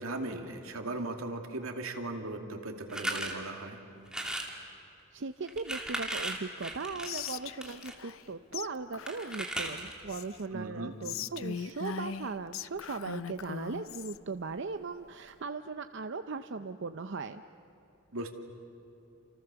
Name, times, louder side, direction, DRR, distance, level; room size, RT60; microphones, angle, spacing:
voice 1, 0.0-3.8 10.5-10.9 18.1-18.3, right 2 dB, 85° right, 4 dB, 2.6 m, -38 dB
sound 1, 2.9-3.3 4.1-4.6 5.4-7.9 9.1-10.0, right 1 dB, 5° right, 2.6 m, -36 dB
voice 2, 5.1-17.4, right 4 dB, 60° right, 9 dB, 0.6 m, -38 dB
Whispering, 7.0-8.3 8.5-8.7 8.9-10.5 11.0-14.2, left 7 dB, 70° left, 0.6 m, -40 dB
29.5 x 28.5 x 7.0 m, 2.9 s
head